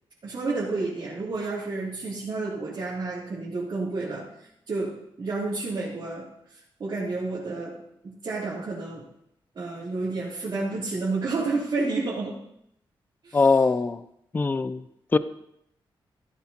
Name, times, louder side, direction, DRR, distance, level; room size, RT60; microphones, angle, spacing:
voice 1, 0.2-4.3 4.7-6.3 6.8-7.8 8.0-9.1 9.5-12.4 13.2-13.4, right 3 dB, 55° right, -9 dB, 3.1 m, -30 dB
voice 2, 13.3-14.0 14.3-14.8 15.1-15.2, left 4 dB, 20° left, 14 dB, 0.4 m, -21 dB
15.5 x 12.0 x 2.9 m, 0.78 s
wide cardioid pair, 150°, 9 cm